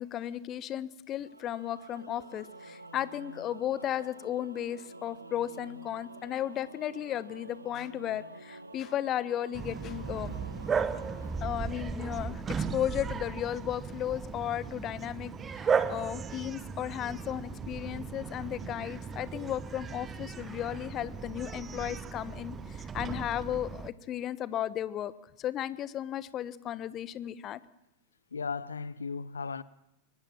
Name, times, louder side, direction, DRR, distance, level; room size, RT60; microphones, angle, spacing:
voice 1, 0.0-10.4 11.4-25.1 25.4-27.6, left 11 dB, 30° left, 1.2 m, -35 dB
Singing / Musical instrument, 1.2-12.5, right 2 dB, 80° right, 1.6 m, -49 dB
Bark, 9.5-23.9, right 6 dB, 20° right, 1.3 m, -36 dB
voice 2, 28.3-29.6, left 5 dB, 75° left, 0.9 m, -37 dB
23.5 x 21.0 x 7.5 m
figure-of-eight pair, 90°, 0 cm